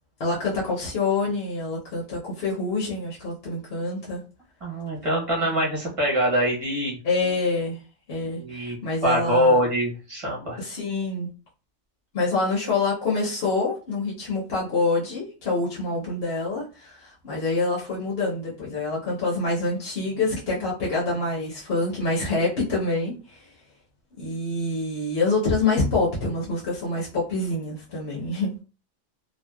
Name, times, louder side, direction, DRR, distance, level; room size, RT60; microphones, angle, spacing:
voice 1, 0.2-4.2 7.0-7.8 8.1-9.6 10.6-11.3 12.1-23.5 24.2-28.5, left 3 dB, 60° left, -5 dB, 0.9 m, -26 dB
voice 2, 4.6-7.0 8.2-8.8 9.0-10.6, equal, 30° right, -4 dB, 0.9 m, -24 dB
2.6 x 2.1 x 2.2 m, 0.34 s
omnidirectional pair, 1.2 m